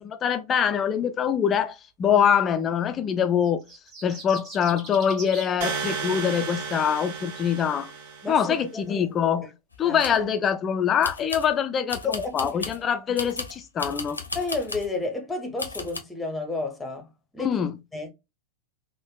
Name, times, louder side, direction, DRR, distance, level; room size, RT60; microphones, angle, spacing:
voice 1, 0.0-3.6 4.0-7.9 8.3-9.5 9.8-14.2 17.4-17.8, left 8 dB, 25° left, 0.3 m, -24 dB
sound 1, 3.4-5.5, right 2 dB, 30° right, 1.5 m, -41 dB
sound 2, 5.6-8.5, right 5 dB, 50° right, 1.1 m, -33 dB
voice 2, 8.2-9.1 9.8-10.0 12.0-12.6 14.3-17.6 17.9-18.1, left 3 dB, 10° left, 0.8 m, -31 dB
sound 3, 9.7-10.2 11.0-11.5 11.9-12.8 13.2-14.9 15.6-16.0, left 3 dB, 80° left, 0.6 m, -35 dB
3.3 x 2.1 x 2.2 m
figure-of-eight pair, 90°, 0 cm